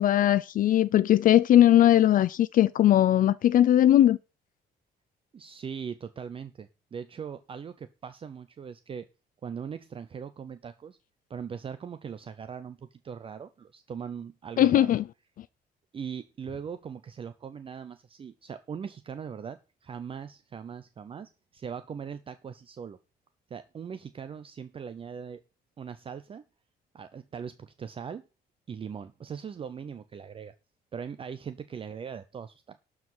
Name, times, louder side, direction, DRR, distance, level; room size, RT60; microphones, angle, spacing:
voice 1, 0.0-4.2 14.6-15.0, left 12 dB, 55° left, 0.5 m, -20 dB
voice 2, 5.3-9.0 9.4-11.0 11.3-14.9 15.9-23.0 23.5-25.4 25.8-26.4 26.9-28.2 28.7-30.5 30.9-32.8, right 7 dB, 30° right, 0.7 m, -40 dB
12.5 x 4.9 x 7.3 m
cardioid pair, 145°, 17 cm